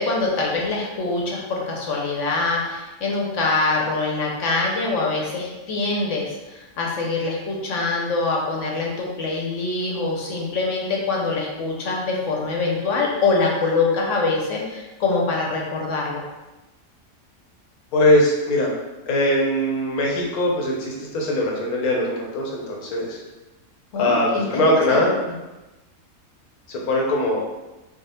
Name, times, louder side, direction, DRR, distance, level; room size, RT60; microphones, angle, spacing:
voice 1, 0.0-16.2 23.9-24.5 24.9-25.1, left 3 dB, 60° left, -2 dB, 1.1 m, -24 dB
voice 2, 17.9-18.7 19.1-23.2 24.0-25.1 26.7-27.4, left 1 dB, 80° left, -1 dB, 1.3 m, -21 dB
5.3 x 2.0 x 3.4 m, 1.1 s
omnidirectional pair, 1.5 m